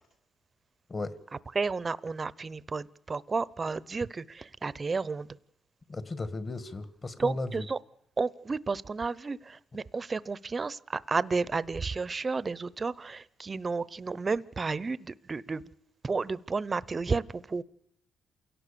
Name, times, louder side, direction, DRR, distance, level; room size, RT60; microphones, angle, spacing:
voice 1, 1.5-5.3 7.2-7.8 8.2-15.6 16.0-17.6, right 4 dB, 30° right, 19 dB, 0.8 m, -32 dB
voice 2, 5.9-7.7, left 2 dB, 30° left, 13 dB, 1.8 m, -35 dB
28.0 x 17.5 x 6.9 m, 0.77 s
cardioid pair, 90°, 0 cm